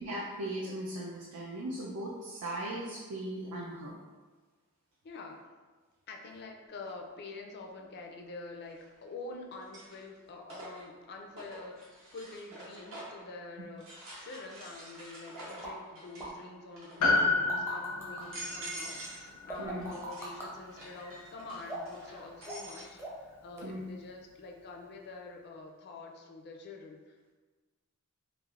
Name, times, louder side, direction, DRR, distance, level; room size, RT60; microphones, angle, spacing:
voice 1, 0.0-4.0 19.6-19.9 23.6-23.8, right 1 dB, 80° right, -4 dB, 0.5 m, -38 dB
voice 2, 5.0-5.5 6.1-13.8 14.2-27.3, left 3 dB, 45° left, 2 dB, 0.4 m, -46 dB
sound 1, 6.9-7.0 8.7-9.1 9.5-13.3 13.8-16.4 16.7-17.2 17.7-17.8 18.2-19.2 19.5-22.9, right 1 dB, 60° right, 0.8 m, -47 dB
sound 2, 15.6-15.7 16.2-16.3 17.2-18.2 19.5-20.5 21.7-22.0 22.4-22.7 23.0-23.3 23.6-23.7, right 2 dB, 10° right, 0.6 m, -41 dB
Piano, 17.0-21.6 21.9-22.0, left 3 dB, 85° left, 0.6 m, -32 dB
3.2 x 2.4 x 2.4 m, 1.4 s
head